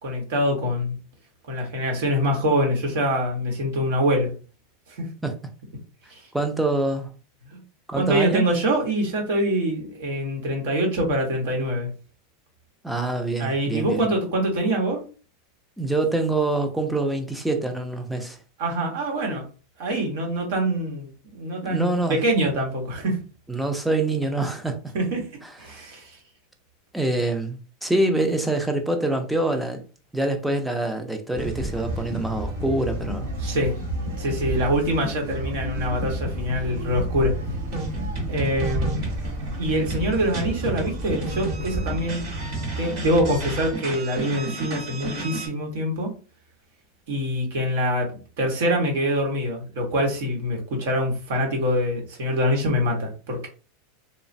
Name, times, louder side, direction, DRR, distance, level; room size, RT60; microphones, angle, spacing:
voice 1, 0.0-1.0 1.5-4.3 5.0-5.1 6.1-6.2 7.5-7.6 7.9-11.9 13.4-15.0 18.6-19.4 19.8-23.2 24.9-25.3 25.6-26.1 33.4-33.7 34.2-37.3 38.3-39.0 39.6-42.3 42.8-46.1 47.1-48.1 48.4-53.5, equal, 70° right, 1.0 m, -24 dB
voice 2, 6.3-7.1 7.9-8.4 12.8-14.1 15.8-18.4 21.6-22.2 23.5-24.9 25.4-25.7 26.9-29.8 30.1-33.3, right 2 dB, ahead, 0.4 m, -25 dB
sound 1, 31.3-43.7, right 1 dB, 90° right, 1.4 m, -31 dB
sound 2, 37.7-45.5, right 3 dB, 40° right, 1.0 m, -34 dB
3.1 x 2.0 x 2.5 m
supercardioid pair, 165°, 0 cm